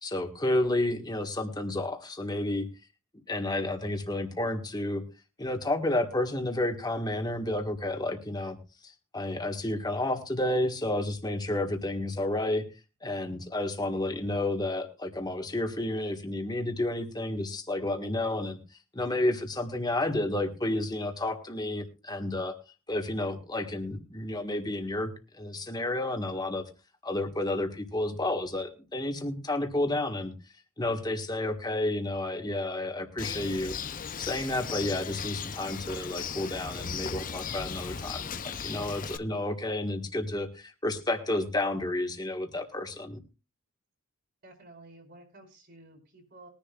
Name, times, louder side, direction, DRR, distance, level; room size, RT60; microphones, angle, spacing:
voice 1, 0.0-2.7 3.3-5.0 5.4-8.6 8.8-12.7 13.0-18.6 18.9-22.5 22.9-26.7 27.0-30.3 30.8-33.8 34.2-43.2, left 1 dB, 20° left, 5 dB, 1.6 m, -31 dB
Bird, 33.2-39.2, left 6 dB, 40° left, 0.7 m, -37 dB
voice 2, 44.4-46.5, right 2 dB, 50° right, 1 dB, 4.8 m, -52 dB
21.5 x 10.5 x 2.4 m, 0.32 s
head